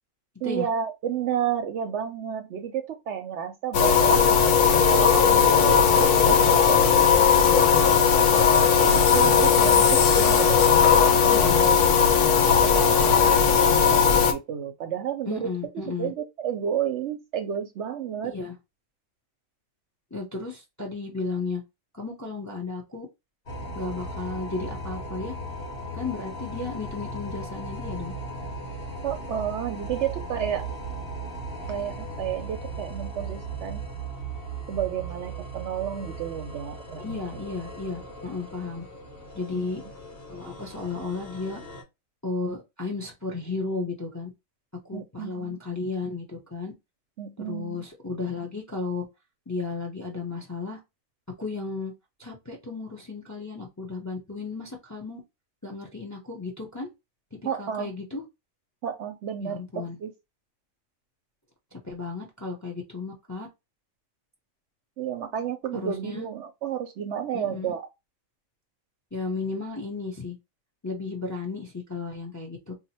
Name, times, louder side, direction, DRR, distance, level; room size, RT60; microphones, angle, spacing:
voice 1, 0.4-4.3 4.9-7.2 7.5-11.8 12.5-15.5 15.9-18.3 29.0-30.7 31.7-33.9 34.7-37.4 39.5-39.7 44.9-45.6 47.2-47.9 57.4-57.9 58.8-60.1 65.0-67.9, right 9 dB, 65° right, 0.8 m, -31 dB
sound 1, 3.7-14.3, left 7 dB, 70° left, 0.9 m, -18 dB
voice 2, 11.3-11.6 15.3-16.1 18.2-18.6 20.1-21.6 22.0-23.1 23.7-25.4 25.9-28.1 37.0-38.8 39.3-39.8 40.3-41.6 42.2-44.3 44.8-46.7 47.5-49.0 49.5-50.8 51.4-51.9 52.2-55.2 55.6-56.9 57.3-58.2 59.4-60.0 61.7-63.5 65.7-66.3 67.3-67.7 69.1-70.4 70.8-72.7, left 4 dB, 20° left, 0.5 m, -34 dB
sound 2, 23.5-41.8, right 2 dB, 45° left, 1.3 m, -37 dB
2.8 x 2.1 x 4.1 m
omnidirectional pair, 1.4 m